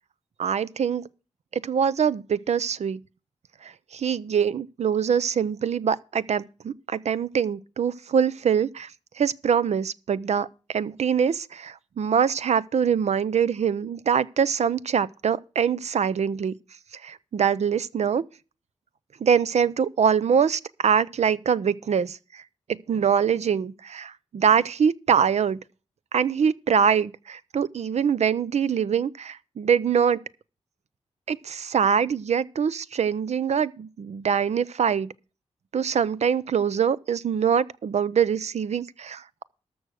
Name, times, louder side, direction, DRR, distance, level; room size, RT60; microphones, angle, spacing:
voice 1, 0.4-1.0 1.5-3.0 3.6-8.9 9.2-16.5 17.0-18.2 19.2-22.4 22.9-25.6 26.1-30.2 31.3-35.1 35.7-39.4, right 7 dB, 70° right, 0.6 m, -24 dB
13.5 x 6.2 x 6.3 m
wide cardioid pair, 115°, 12 cm